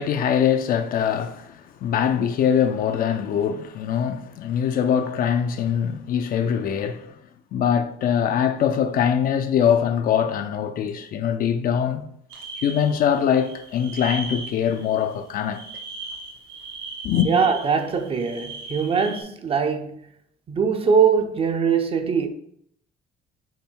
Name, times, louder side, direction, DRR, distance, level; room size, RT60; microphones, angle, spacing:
voice 1, 0.0-7.1 7.5-12.1 12.6-15.6 17.0-17.3, left 8 dB, 60° left, 0.5 m, -23 dB
sound 1, 12.3-19.2, right 3 dB, 80° right, 1.0 m, -38 dB
voice 2, 17.3-20.0 20.5-22.3, right 6 dB, 35° right, 0.5 m, -22 dB
5.6 x 2.1 x 4.5 m
cardioid pair, 110°, 17 cm